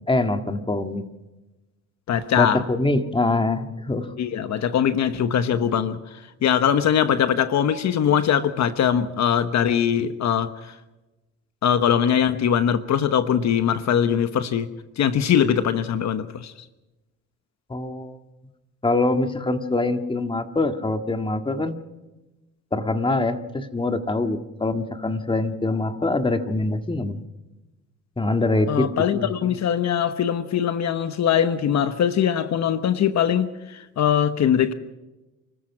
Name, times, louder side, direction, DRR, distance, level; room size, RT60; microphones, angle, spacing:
voice 1, 0.1-1.0 2.4-4.1 17.7-18.2 18.8-21.8 22.7-27.2 28.2-29.3, left 2 dB, 15° left, 7 dB, 1.9 m, -24 dB
voice 2, 2.1-2.6 4.2-10.8 11.6-16.5 28.7-34.7, left 8 dB, 65° left, 11 dB, 1.1 m, -22 dB
29.5 x 14.0 x 6.1 m, 1.1 s
cardioid pair, 90°, 30 cm